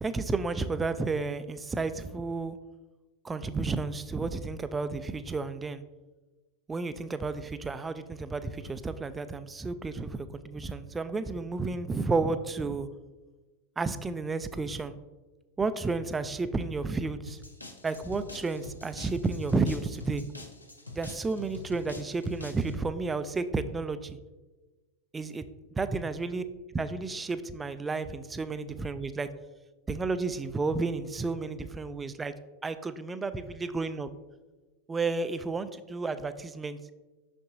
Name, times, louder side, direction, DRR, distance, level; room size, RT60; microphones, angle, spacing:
voice 1, 0.0-2.6 3.2-5.8 6.7-12.9 13.8-15.0 15.6-17.4 17.8-20.2 20.9-24.2 25.1-25.4 25.8-26.4 26.7-29.3 29.9-32.3 32.6-34.1 34.9-36.8, right 3 dB, 15° right, 13 dB, 0.3 m, -32 dB
sound 1, 17.3-22.7, left 2 dB, 85° left, 0.7 m, -46 dB
6.5 x 6.0 x 2.6 m, 1.2 s
figure-of-eight pair, 90°, 0 cm